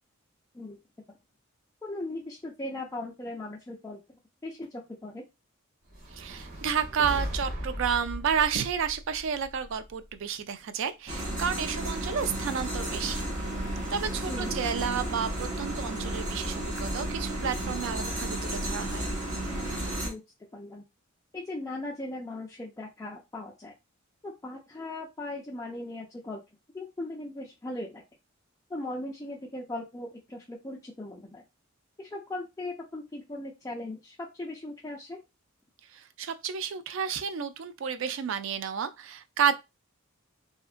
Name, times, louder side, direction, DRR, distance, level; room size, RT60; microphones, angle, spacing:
voice 1, 1.8-4.0 4.4-5.2 14.3-14.6 20.0-20.2 20.5-20.8 21.3-23.7 24.2-26.4 26.7-28.0 28.7-31.4 32.0-35.2, left 2 dB, 15° left, 0.4 m, -38 dB
sound 1, 5.9-10.1, equal, 80° right, 1.1 m, -38 dB
voice 2, 6.1-13.2 13.9-19.1 35.9-39.5, right 7 dB, 60° right, 0.3 m, -31 dB
sound 2, 11.1-20.1, right 1 dB, 35° right, 1.4 m, -33 dB
2.7 x 2.4 x 2.4 m
head